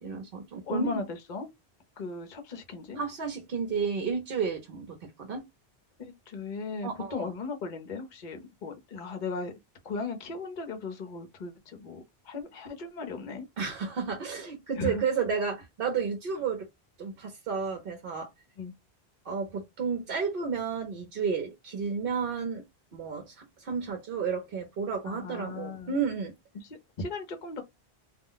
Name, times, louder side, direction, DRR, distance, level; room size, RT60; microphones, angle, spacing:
voice 1, 0.0-1.0 3.0-5.4 6.8-7.3 13.6-16.7 17.0-18.3 19.2-22.6 22.9-26.3, right 5 dB, 65° right, 0.8 m, -32 dB
voice 2, 0.6-1.5 2.0-3.0 6.0-9.5 9.8-13.5 14.8-15.0 18.6-18.7 25.0-25.9 26.5-27.6, left 4 dB, 50° left, 0.8 m, -37 dB
2.3 x 2.1 x 3.7 m
omnidirectional pair, 1.1 m